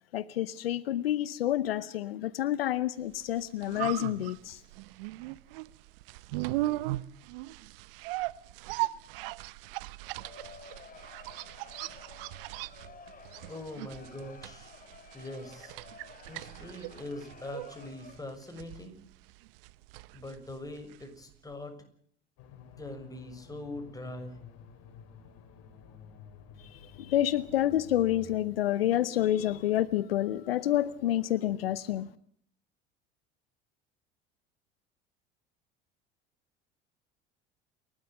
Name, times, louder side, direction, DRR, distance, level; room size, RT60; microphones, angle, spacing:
voice 1, 0.1-4.6 26.7-32.1, left 12 dB, 80° left, 17 dB, 0.8 m, -29 dB
sound 1, 3.2-21.2 21.5-21.6, right 19 dB, 70° right, 0.9 m, -38 dB
Crowd, 9.9-18.4, left 5 dB, 30° left, 4.5 m, -53 dB
voice 2, 13.5-14.7 15.1-15.8 16.3-19.0 20.1-21.8 22.8-24.4, left 1 dB, 10° left, 5 dB, 6.8 m, -42 dB
sound 2, 22.4-28.4, left 5 dB, 60° left, 4.6 m, -51 dB
29.0 x 13.0 x 9.2 m, 0.62 s
hypercardioid pair, 70°, 29 cm